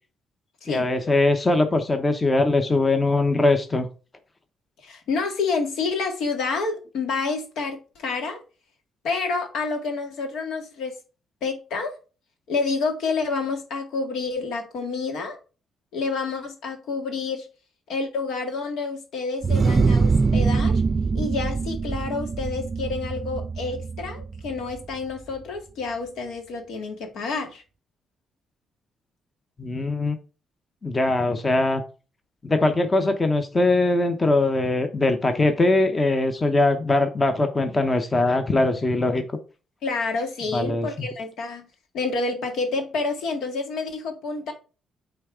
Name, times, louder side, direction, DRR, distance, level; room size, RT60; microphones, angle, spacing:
voice 1, 0.7-3.9 29.6-30.2 30.8-31.8 32.4-39.2 40.5-41.1, left 2 dB, 25° left, 0.9 m, -21 dB
voice 2, 4.8-8.4 9.0-10.9 11.4-11.9 12.5-15.4 15.9-17.5 17.9-20.8 21.1-27.6 39.8-41.7 41.9-44.5, left 4 dB, 80° left, 1.9 m, -28 dB
sound 1, 19.4-24.9, right 4 dB, 35° right, 0.3 m, -23 dB
8.4 x 3.4 x 4.9 m
cardioid pair, 90°, 0 cm